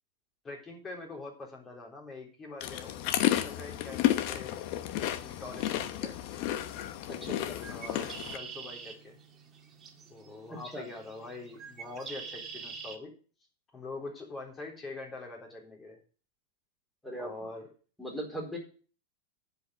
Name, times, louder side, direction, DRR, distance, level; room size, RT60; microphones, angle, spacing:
voice 1, 0.4-4.6 5.2-6.2 7.7-9.2 10.1-13.1 13.7-16.0 17.2-17.7, left 3 dB, 20° left, 0 dB, 3.9 m, -44 dB
sound 1, 2.6-8.4, left 13 dB, 55° left, 0.9 m, -32 dB
voice 2, 7.1-7.6 10.5-10.9 17.0-17.3 18.0-18.6, right 1 dB, 5° left, -1 dB, 4.2 m, -39 dB
Bird, 7.5-13.0, right 6 dB, 25° right, 1.7 m, -46 dB
10.5 x 5.3 x 8.0 m, 0.40 s
supercardioid pair, 125°, 0 cm